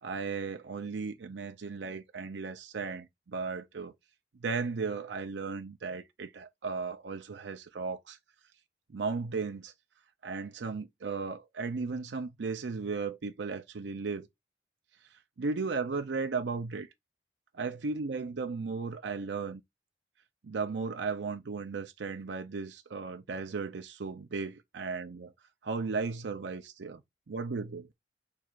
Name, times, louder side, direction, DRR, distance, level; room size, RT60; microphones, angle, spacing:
voice 1, 0.0-3.9 4.4-8.2 8.9-9.7 10.2-14.3 15.4-16.9 17.6-19.6 20.4-25.3 25.6-27.0 27.3-27.9, right 4 dB, 75° right, 0.5 m, -35 dB
6.1 x 3.2 x 2.4 m
head